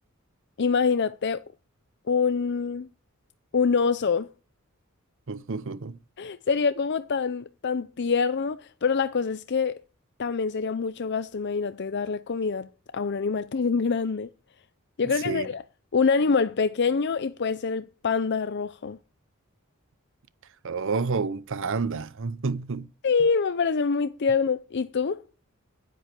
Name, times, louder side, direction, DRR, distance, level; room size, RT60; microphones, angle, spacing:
voice 1, 0.6-1.4 2.1-2.9 3.5-4.3 6.2-9.8 10.2-12.7 12.9-14.3 15.0-15.6 15.9-19.0 23.0-25.2, left 5 dB, 55° left, 0.5 m, -25 dB
voice 2, 5.3-6.0 15.2-15.5 20.6-22.9, right 4 dB, 60° right, 0.7 m, -29 dB
10.0 x 9.2 x 8.4 m
head